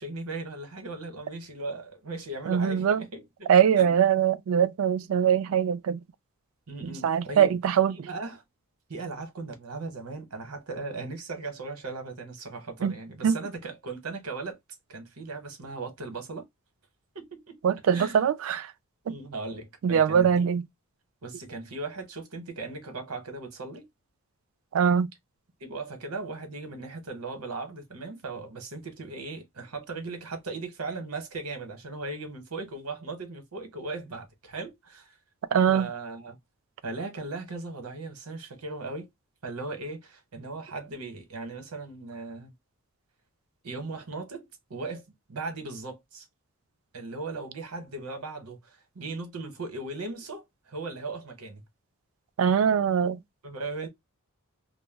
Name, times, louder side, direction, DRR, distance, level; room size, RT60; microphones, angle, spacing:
voice 1, 0.0-3.5 3.8-3.9 6.7-7.6 7.9-8.4 8.9-14.6 14.9-16.5 17.1-17.6 17.9-18.3 19.1-20.5 21.2-23.9 25.6-35.2 35.7-36.4 36.8-39.1 39.4-42.5 43.6-46.3 46.9-51.6 53.4-53.9, right 3 dB, 85° right, 0.9 m, -38 dB
voice 2, 2.5-3.0 3.5-6.0 7.0-8.1 12.8-12.9 13.2-13.4 17.6-18.7 19.1-19.2 19.8-20.6 24.7-25.1 35.5-35.9 52.4-53.2, right 8 dB, 65° right, 0.3 m, -22 dB
2.2 x 2.1 x 3.2 m
head